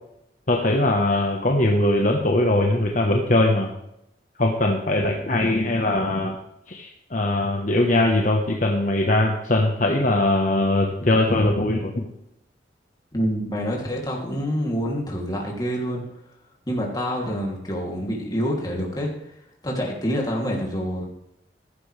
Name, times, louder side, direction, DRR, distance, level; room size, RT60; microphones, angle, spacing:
voice 1, 0.5-3.7 4.4-6.4 6.7-12.1, left 1 dB, 45° left, 1 dB, 1.2 m, -21 dB
voice 2, 13.1-16.0 16.7-19.1 19.6-21.1, equal, 20° left, -2 dB, 2.9 m, -26 dB
15.0 x 12.0 x 3.4 m, 0.82 s
head